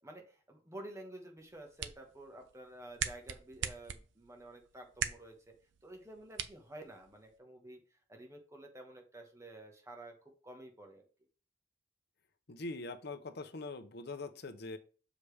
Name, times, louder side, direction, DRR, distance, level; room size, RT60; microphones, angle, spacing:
voice 1, 0.0-5.5 5.8-7.8 8.1-10.1 10.4-11.0, right 1 dB, 15° right, 2 dB, 1.3 m, -51 dB
sound 1, 1.4-7.4, right 8 dB, 85° right, 0.6 m, -43 dB
voice 2, 12.5-14.8, left 3 dB, 60° left, 8 dB, 0.8 m, -43 dB
7.0 x 5.0 x 3.3 m, 0.38 s
head